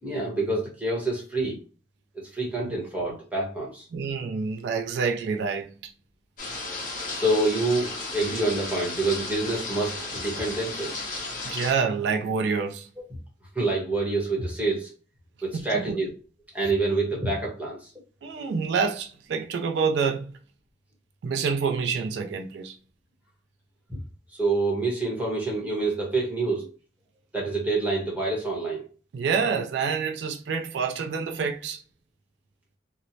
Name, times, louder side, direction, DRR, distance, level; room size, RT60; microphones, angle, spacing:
voice 1, 0.0-1.6 2.3-3.8 7.1-11.1 13.5-14.9 15.4-16.1 16.5-17.9 24.4-26.7 27.3-28.8, right 2 dB, 10° right, 0.9 m, -27 dB
voice 2, 3.9-5.9 11.4-12.9 15.5-16.0 18.2-20.3 21.2-22.8 29.1-31.8, right 5 dB, 65° right, 0.3 m, -27 dB
sound 1, 6.4-11.7, left 3 dB, 45° left, 0.8 m, -34 dB
3.0 x 2.0 x 2.6 m
head